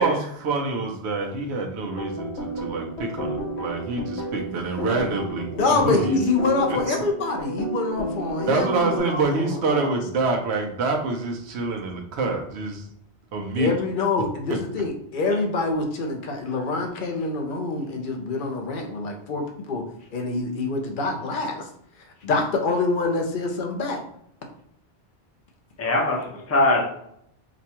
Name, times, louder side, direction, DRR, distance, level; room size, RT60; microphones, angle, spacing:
voice 1, 0.0-4.0 4.3-6.2 6.9-7.0 8.5-12.9 13.3-13.7, right 3 dB, 80° right, 1 dB, 1.0 m, -26 dB
sound 1, 1.9-9.0, right 1 dB, 75° left, 1.3 m, -32 dB
voice 2, 5.5-10.0 13.6-19.8 20.1-21.7 22.2-24.0, left 3 dB, 55° left, 2 dB, 0.8 m, -26 dB
voice 3, 25.8-26.8, left 2 dB, 15° left, -1 dB, 0.7 m, -21 dB
5.0 x 2.3 x 2.9 m, 0.72 s
omnidirectional pair, 1.1 m